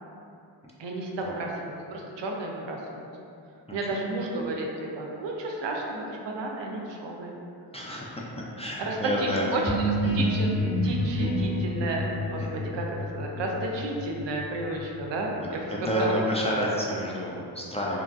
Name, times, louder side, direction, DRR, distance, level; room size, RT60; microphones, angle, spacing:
voice 1, 0.8-3.1 3.7-7.3 8.8-9.8 10.1-10.5 10.8-12.9 13.1-15.7 15.9-16.2, right 2 dB, 70° right, 0 dB, 0.5 m, -32 dB
voice 2, 7.7-8.2 8.6-9.5 12.4-12.7 15.4-18.0, equal, 15° left, -5 dB, 0.4 m, -29 dB
sound 1, 9.6-15.3, equal, 70° left, 1.3 m, -29 dB
2.9 x 2.5 x 2.3 m, 2.6 s
cardioid pair, 50°, 45 cm